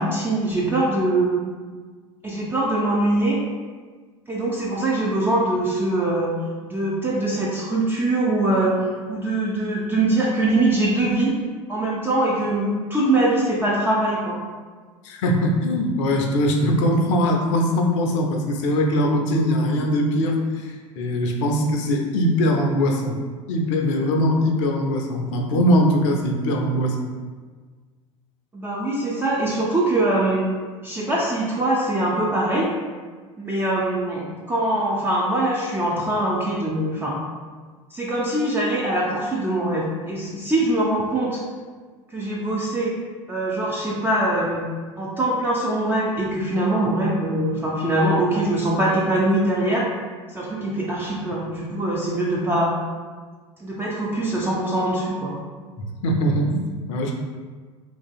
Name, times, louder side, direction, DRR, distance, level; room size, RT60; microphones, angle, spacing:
voice 1, 0.0-1.4 2.2-3.4 4.3-6.3 6.6-8.8 9.1-11.4 11.7-14.4 28.5-30.4 30.8-32.7 33.4-37.2 37.9-41.4 42.1-42.9 43.3-44.6 45.0-49.9 50.3-52.7 53.6-55.4, right 1 dB, 15° right, -5 dB, 0.4 m, -22 dB
voice 2, 15.0-23.2 23.5-27.1 55.8-57.1, equal, 65° left, 2 dB, 0.5 m, -21 dB
2.9 x 2.6 x 2.3 m, 1.5 s
figure-of-eight pair, 75°, 17 cm